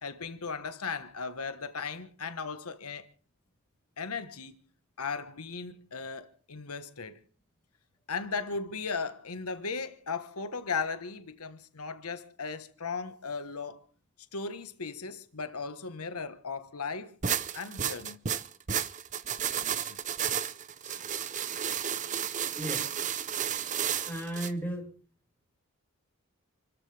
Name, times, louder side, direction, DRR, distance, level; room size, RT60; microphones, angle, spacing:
voice 1, 0.0-3.1 4.0-4.6 5.0-7.2 8.1-13.8 14.3-17.2 17.5-18.2 19.5-20.0, left 5 dB, 90° left, 1.3 m, -37 dB
sound 1, 17.2-24.5, right 8 dB, 35° right, 0.7 m, -32 dB
voice 2, 22.6-22.9 24.1-24.8, right 1 dB, 10° left, 5.5 m, -35 dB
29.0 x 14.0 x 3.4 m
head